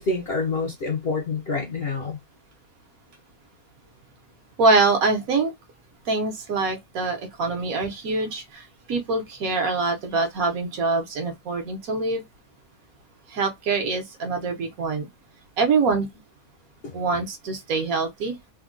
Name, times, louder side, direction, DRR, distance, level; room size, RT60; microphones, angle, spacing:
voice 1, 0.0-2.2 16.8-16.9, left 3 dB, 55° left, 0.7 m, -27 dB
voice 2, 4.6-5.5 6.1-12.2 13.3-15.1 15.6-16.1 16.9-18.4, right 3 dB, 65° right, 1.2 m, -24 dB
3.5 x 2.2 x 2.5 m
omnidirectional pair, 1.7 m